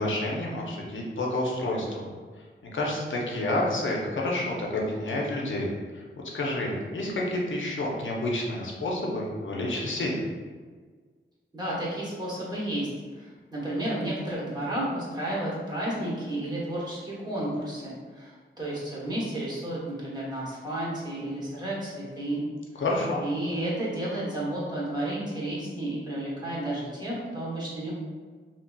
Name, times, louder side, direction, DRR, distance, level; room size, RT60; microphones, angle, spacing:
voice 1, 0.0-2.0 2.6-5.7 5.9-6.0 6.3-10.2 22.8-23.2, left 1 dB, 65° left, -2 dB, 0.6 m, -29 dB
voice 2, 11.5-12.9 13.1-22.4 23.2-27.9, right 1 dB, 20° right, -7 dB, 1.1 m, -32 dB
2.8 x 2.7 x 2.3 m, 1.5 s
wide cardioid pair, 85°, 21 cm